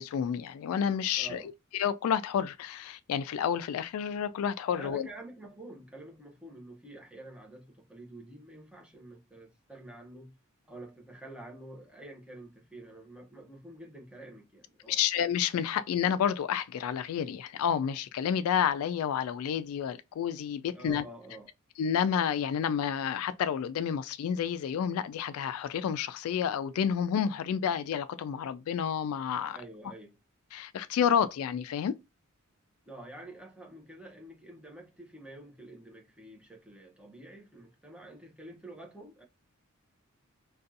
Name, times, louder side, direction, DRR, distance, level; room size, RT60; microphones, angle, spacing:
voice 1, 0.0-1.4 1.7-5.1 14.9-21.0 21.8-29.6 30.5-31.9, left 8 dB, 75° left, 0.3 m, -30 dB
voice 2, 1.2-1.5 4.8-10.4 10.7-15.0 20.7-21.5 29.5-30.2 32.9-39.2, right 1 dB, 5° right, 0.6 m, -48 dB
2.5 x 2.2 x 2.6 m
head